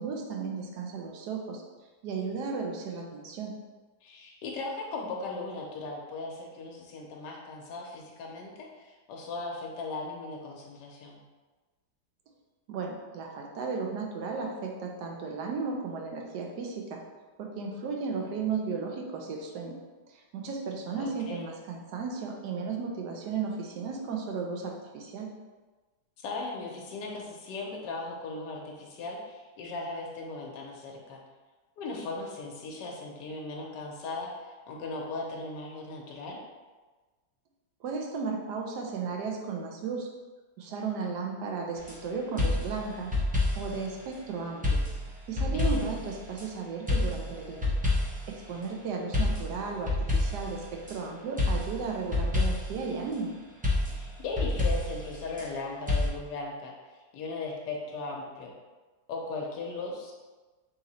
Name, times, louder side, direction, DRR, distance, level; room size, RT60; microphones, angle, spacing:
voice 1, 0.0-1.6 2.0-3.5 12.7-17.0 17.4-19.8 20.1-25.3 37.8-40.1 40.6-43.1 43.6-44.8 45.3-47.7 48.3-53.3, right 5 dB, 75° right, 1 dB, 1.2 m, -35 dB
voice 2, 4.0-11.2 21.0-21.5 26.2-31.2 31.8-36.4 45.5-45.9 53.9-56.7 57.1-58.5 59.1-60.1, left 3 dB, 80° left, -1 dB, 1.3 m, -38 dB
sound 1, 41.8-42.0 42.4-43.8 44.6-46.4 46.9-48.4 49.1-50.9 51.4-52.9 53.6-55.5 55.9-56.1, left 2 dB, 10° right, 0.5 m, -28 dB
3.8 x 2.8 x 4.0 m, 1.3 s
omnidirectional pair, 1.8 m